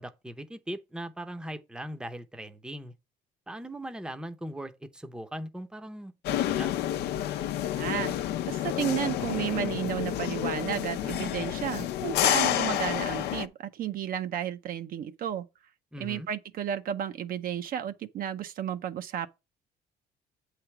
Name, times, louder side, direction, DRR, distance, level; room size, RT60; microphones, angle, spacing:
voice 1, 0.0-2.9 3.5-6.8 15.9-16.3, right 1 dB, 5° right, 0.7 m, -39 dB
sound 1, 6.2-13.5, left 12 dB, 80° left, 0.6 m, -29 dB
voice 2, 7.7-8.2 8.5-15.5 16.0-19.3, right 10 dB, 60° right, 0.7 m, -32 dB
7.9 x 3.3 x 5.8 m
cardioid pair, 110°, 17 cm